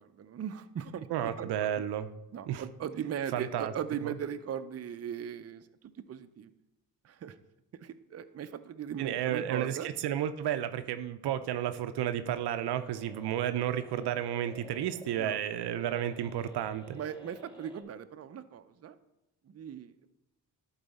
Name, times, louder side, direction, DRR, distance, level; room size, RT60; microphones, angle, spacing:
voice 1, 0.0-1.8 2.3-5.7 6.1-6.5 7.0-7.4 7.7-9.9 15.2-15.4 17.0-19.0 19.5-20.1, right 8 dB, 40° right, 10 dB, 0.5 m, -39 dB
voice 2, 1.1-2.1 2.5-2.6 3.3-3.7 4.0-4.1 9.0-17.0, right 10 dB, 90° right, 10 dB, 0.5 m, -32 dB
sound 1, 12.3-17.8, left 1 dB, 15° left, 1.4 m, -51 dB
11.5 x 4.1 x 4.1 m, 0.94 s
cardioid pair, 75°, 38 cm